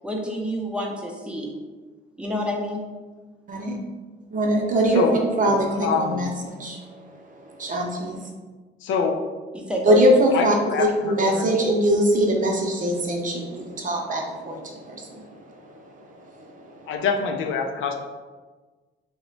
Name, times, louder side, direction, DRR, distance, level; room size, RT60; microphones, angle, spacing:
voice 1, 0.0-1.5 2.2-2.8 9.5-10.0, equal, 5° right, -1 dB, 0.6 m, -28 dB
voice 2, 3.5-3.8 4.3-5.0 5.4-6.8 7.6-8.2 9.8-15.2, right 1 dB, 40° right, 1 dB, 0.7 m, -22 dB
voice 3, 4.9-5.3 5.8-6.2 8.8-9.2 10.3-11.5 16.9-18.0, left 5 dB, 80° left, 4 dB, 0.4 m, -25 dB
2.9 x 2.2 x 3.9 m, 1.3 s
cardioid pair, 90°, 20 cm